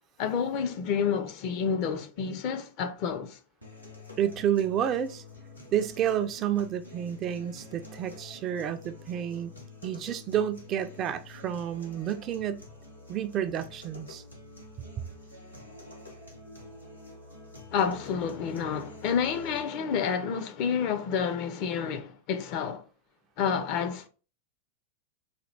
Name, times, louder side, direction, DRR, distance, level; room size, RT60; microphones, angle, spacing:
voice 1, 0.2-3.4 17.7-22.8 23.4-24.1, left 7 dB, 45° left, 0.5 m, -29 dB
sound 1, 3.6-19.6, left 3 dB, 90° left, 0.9 m, -48 dB
voice 2, 4.2-5.2 5.7-9.5 9.8-12.6 13.1-14.2, right 10 dB, 30° right, 0.3 m, -30 dB
4.1 x 2.3 x 3.2 m
figure-of-eight pair, 90°, 0 cm